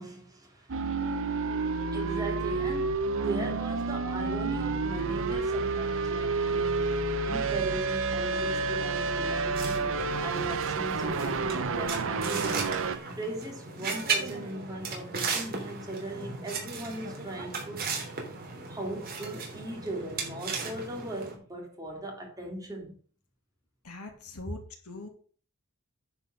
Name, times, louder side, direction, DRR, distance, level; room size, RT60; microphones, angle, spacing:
voice 1, 0.0-6.9 7.2-12.7 13.2-17.9 18.7-23.0, right 1 dB, 15° right, 3.0 m, -38 dB
sound 1, 0.7-13.0, right 4 dB, 65° right, 0.9 m, -30 dB
sound 2, 9.5-21.3, right 4 dB, 45° right, 3.2 m, -36 dB
voice 2, 23.8-25.1, left 2 dB, 80° left, 2.5 m, -42 dB
9.9 x 5.4 x 6.4 m
head